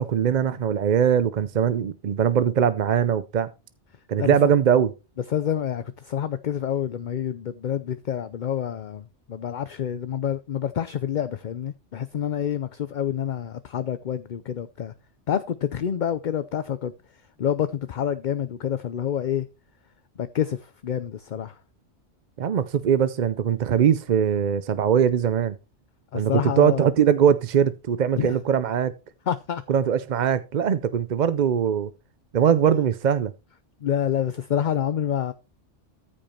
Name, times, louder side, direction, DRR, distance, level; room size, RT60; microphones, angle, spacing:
voice 1, 0.0-3.5 4.1-4.9 22.4-25.5 26.1-28.9 29.7-31.9 32.3-33.3, right 8 dB, 50° right, 0.5 m, -21 dB
voice 2, 5.3-14.9 15.3-16.9 17.4-19.5 20.2-21.6 26.1-26.9 28.2-28.4 29.3-29.6 33.8-35.3, left 9 dB, 50° left, 0.6 m, -27 dB
14.0 x 5.1 x 4.3 m
omnidirectional pair, 1.3 m